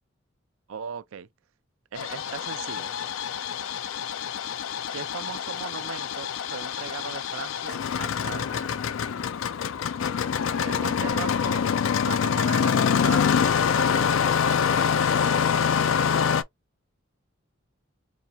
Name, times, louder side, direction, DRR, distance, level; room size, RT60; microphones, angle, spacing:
voice 1, 0.7-1.3 1.9-3.0 4.9-8.8 10.6-11.7 12.0-15.6, right 7 dB, 85° right, 0.4 m, -39 dB
Engine starting, 1.9-16.4, left 7 dB, 75° left, 0.4 m, -25 dB
4.2 x 2.3 x 2.7 m
head